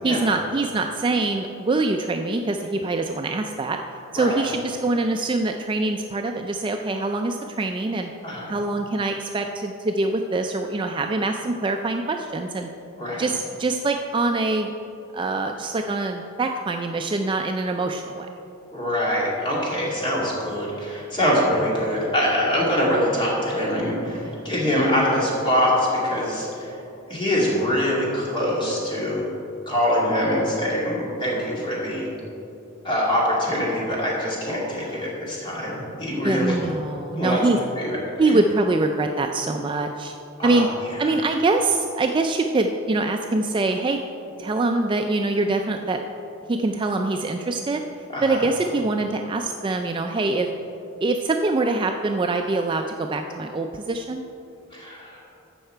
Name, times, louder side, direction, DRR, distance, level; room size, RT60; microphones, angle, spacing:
voice 1, 0.0-3.8 4.1-8.1 8.5-12.7 13.2-14.7 15.1-18.3 24.3-24.4 34.9-35.0 35.5-35.6 36.2-37.6 38.2-40.2 40.4-40.7 41.0-44.0 44.4-46.0 46.5-47.8 48.2-50.5 51.0-54.2, right 2 dB, 25° right, 4 dB, 0.3 m, -24 dB
voice 2, 8.2-8.5 13.0-13.2 18.7-26.8 27.1-29.3 29.7-32.1 32.8-36.6 37.2-37.4 37.7-38.4 40.4-40.7 41.0-41.2 48.1-48.4 54.7-55.2, equal, 25° left, -5 dB, 2.4 m, -24 dB
14.0 x 5.8 x 4.5 m, 2.8 s
head